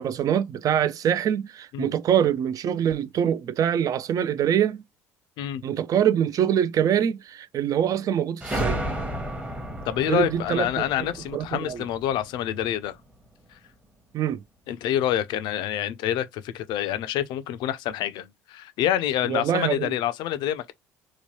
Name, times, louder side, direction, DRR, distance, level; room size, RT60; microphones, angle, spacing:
voice 1, 0.0-4.8 5.6-8.8 10.1-10.8 11.3-11.8 14.1-14.4 19.3-19.9, right 9 dB, 45° right, 0.4 m, -24 dB
sound 1, 8.4-12.9, right 1 dB, 15° right, 0.9 m, -33 dB
voice 2, 9.8-13.0 13.5-13.6 14.7-20.7, left 11 dB, 65° left, 0.4 m, -27 dB
2.9 x 2.2 x 3.0 m
hypercardioid pair, 70°, 8 cm